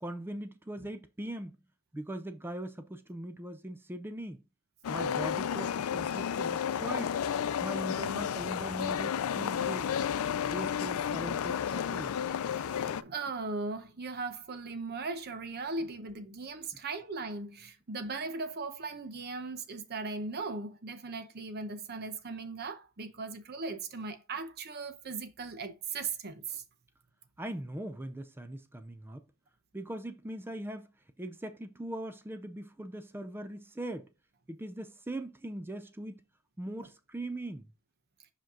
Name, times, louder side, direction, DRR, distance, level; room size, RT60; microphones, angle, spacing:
voice 1, 0.0-1.6 1.9-4.4 4.9-7.2 7.6-9.9 10.5-12.2 27.4-29.3 29.7-30.9 31.2-34.1 34.5-36.2 36.6-37.7, right 1 dB, 10° right, 0.4 m, -40 dB
sound 1, 4.8-13.0, left 8 dB, 80° left, 0.4 m, -32 dB
voice 2, 12.6-26.6, right 3 dB, 50° right, 0.8 m, -38 dB
5.2 x 5.1 x 3.7 m
head